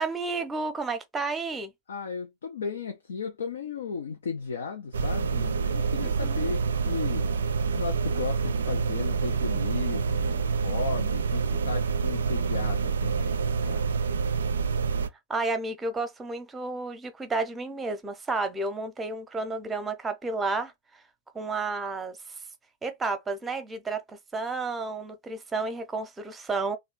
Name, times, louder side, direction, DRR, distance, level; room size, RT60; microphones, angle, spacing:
voice 1, 0.0-1.7 6.0-6.5 15.3-21.0 21.3-22.4 22.8-24.0 24.3-26.8, right 3 dB, 15° right, 0.8 m, -31 dB
voice 2, 1.9-7.3 7.7-13.9, left 6 dB, 65° left, 0.5 m, -35 dB
sound 1, 4.9-15.1, right 5 dB, 70° right, 0.4 m, -27 dB
3.1 x 2.2 x 3.7 m
figure-of-eight pair, 90°, 0 cm